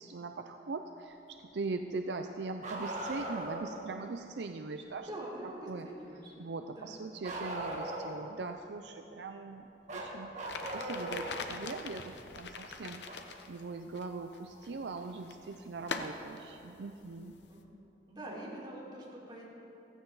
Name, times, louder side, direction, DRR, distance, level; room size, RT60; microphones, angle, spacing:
voice 1, 0.0-5.1 5.7-5.9 6.4-13.0 13.5-17.4, right 3 dB, 65° right, 6 dB, 0.5 m, -41 dB
Bark, 2.6-3.7 7.2-8.3 9.9-11.4 13.1-13.2 15.1-15.2 16.3-16.4, right 1 dB, 40° right, 1.7 m, -38 dB
voice 2, 5.1-6.3 6.7-6.9 17.5-17.6 18.1-19.4, right 1 dB, 25° right, -6 dB, 3.2 m, -44 dB
sound 1, 10.4-17.6, left 4 dB, 65° left, 0.8 m, -44 dB
15.5 x 14.5 x 4.0 m, 2.9 s
head